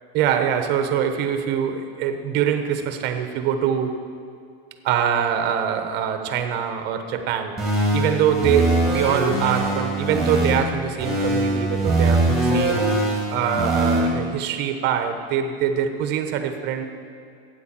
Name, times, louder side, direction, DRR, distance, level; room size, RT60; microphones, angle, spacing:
voice 1, 0.1-4.0 4.8-7.6 7.9-12.9 13.3-16.8, right 8 dB, 30° right, 7 dB, 1.0 m, -24 dB
sound 1, 7.6-10.6 11.0-14.0, right 2 dB, ahead, 2.7 m, -22 dB
13.0 x 9.3 x 7.5 m, 2.4 s
supercardioid pair, 165°, 32 cm